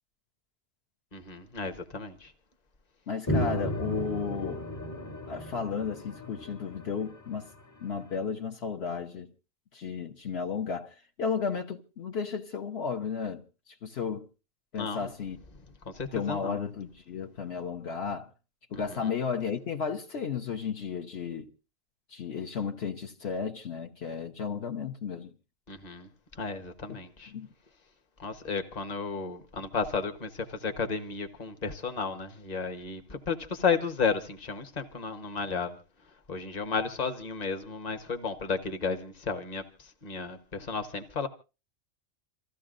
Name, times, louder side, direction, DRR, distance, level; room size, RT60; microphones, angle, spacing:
voice 1, 1.1-2.3 14.8-15.1 15.8-16.5 18.9-19.1 25.7-26.1 26.4-27.3 28.2-35.8 36.3-41.3, left 5 dB, 35° left, 1.3 m, -33 dB
voice 2, 3.1-4.6 5.3-7.5 7.8-9.3 9.7-13.4 13.8-14.3 14.7-15.4 16.1-18.3 18.7-21.5 22.1-25.3 26.9-27.0 27.3-27.5, left 6 dB, 65° left, 1.2 m, -33 dB
sound 1, 3.3-7.9, left 1 dB, 20° left, 0.6 m, -34 dB
27.5 x 15.0 x 2.5 m
omnidirectional pair, 1.2 m